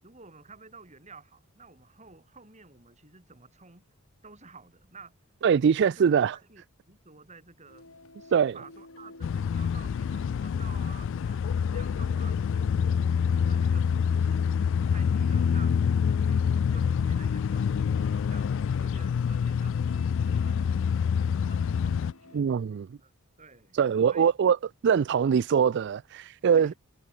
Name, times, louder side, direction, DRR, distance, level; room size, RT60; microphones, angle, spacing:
voice 1, 0.0-3.8 4.2-5.2 5.7-7.9 8.2-12.7 13.3-14.6 14.9-22.4 23.0-23.1 23.4-23.8 24.1-24.3 26.5-26.8, right 4 dB, 35° right, 8.0 m, -52 dB
voice 2, 5.4-6.4 8.3-8.5 22.3-23.0 23.7-24.6 24.8-26.7, right 7 dB, 55° right, 0.3 m, -23 dB
sound 1, 7.7-22.4, left 2 dB, 85° left, 4.8 m, -52 dB
sound 2, 9.2-22.1, left 7 dB, 60° left, 0.3 m, -26 dB
head